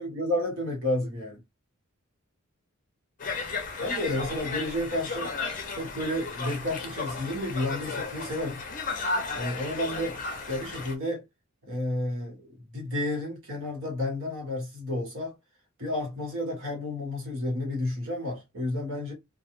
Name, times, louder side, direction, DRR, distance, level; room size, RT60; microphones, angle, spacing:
voice 1, 0.0-1.4 3.8-5.3 5.8-8.6 9.3-10.2 10.5-11.2 11.7-12.5 12.7-15.3 15.8-19.1, left 1 dB, 60° right, 1.2 m, -31 dB
Conversation, 3.2-10.9, left 4 dB, 40° left, 0.5 m, -34 dB
2.3 x 2.2 x 2.9 m
head